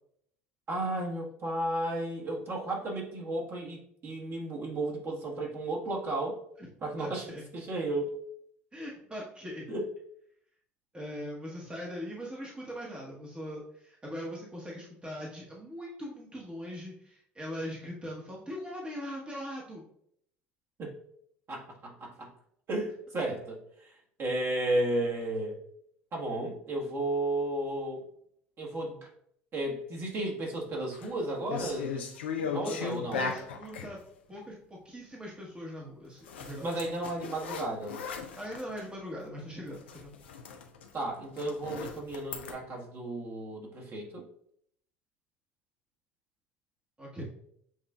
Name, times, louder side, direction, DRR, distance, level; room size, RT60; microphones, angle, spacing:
voice 1, 0.7-6.4 6.8-8.2 9.7-9.9 20.8-21.0 21.5-22.3 22.7-25.6 26.1-28.0 28.6-29.1 29.5-32.1 32.4-33.3 36.6-38.0 40.9-44.2 47.2-47.3, right 1 dB, 40° right, -2 dB, 1.4 m, -33 dB
voice 2, 7.0-7.4 8.7-9.7 10.9-19.8 32.5-34.0 34.3-37.0 38.4-40.1 47.0-47.2, equal, 15° right, -3 dB, 1.1 m, -41 dB
sound 1, 30.7-31.1 31.5-33.9 36.2-38.9 39.2-39.4 39.7-42.5, left 5 dB, 80° left, 0.5 m, -38 dB
7.3 x 2.5 x 2.3 m, 0.68 s
hypercardioid pair, 65°, 6 cm